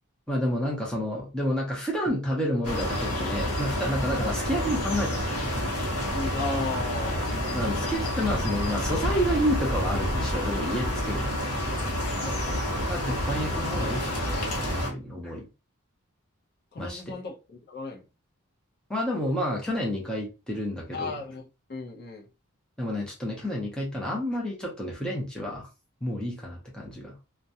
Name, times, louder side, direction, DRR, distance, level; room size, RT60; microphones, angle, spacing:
voice 1, 0.3-5.5 7.5-11.5 12.9-15.5 16.8-17.1 18.9-21.1 22.8-25.7 26.0-27.2, equal, 5° left, 0.6 m, -30 dB
sound 1, 2.6-14.9, left 1 dB, 85° left, 0.9 m, -29 dB
voice 2, 6.1-7.4 12.2-12.5 15.0-15.1 16.7-18.0 20.9-21.4 21.7-22.3, left 3 dB, 45° left, 0.5 m, -35 dB
2.3 x 2.1 x 2.6 m
head